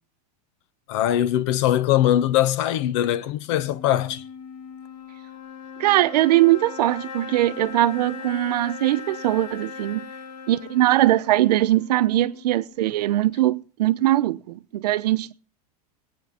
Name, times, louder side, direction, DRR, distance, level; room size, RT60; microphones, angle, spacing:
voice 1, 0.9-4.2, left 12 dB, 45° left, 0.7 m, -21 dB
sound 1, 3.4-12.9, left 6 dB, 85° left, 2.2 m, -39 dB
voice 2, 5.8-10.1 10.5-15.3, right 15 dB, 75° right, 0.9 m, -21 dB
20.5 x 9.4 x 3.5 m
supercardioid pair, 170°, 21 cm